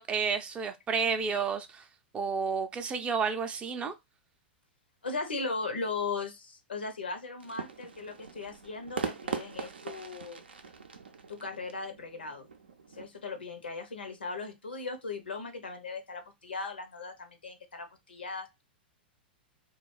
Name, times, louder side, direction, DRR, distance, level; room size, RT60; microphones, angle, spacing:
voice 1, 0.0-1.8 2.1-3.9, right 5 dB, 20° right, 0.4 m, -31 dB
voice 2, 5.0-10.4 11.3-12.5 12.9-18.6, left 4 dB, 80° left, 0.7 m, -38 dB
sound 1, 7.4-13.1, right 5 dB, 80° right, 0.5 m, -41 dB
2.5 x 2.3 x 3.0 m
figure-of-eight pair, 100°, 6 cm